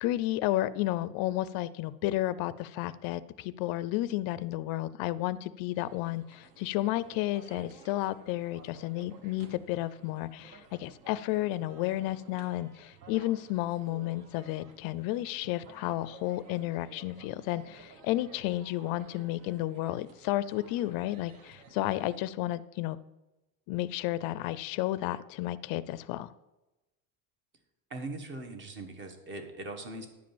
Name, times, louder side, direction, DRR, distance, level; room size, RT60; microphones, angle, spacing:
voice 1, 0.0-23.0 23.7-26.3, left 15 dB, 65° left, 17 dB, 0.5 m, -32 dB
sound 1, 5.7-22.3, right 4 dB, 55° right, 1.4 m, -55 dB
voice 2, 27.9-30.1, right 2 dB, 30° right, 6 dB, 1.4 m, -40 dB
10.0 x 5.1 x 7.2 m, 1.0 s
cardioid pair, 165°, 37 cm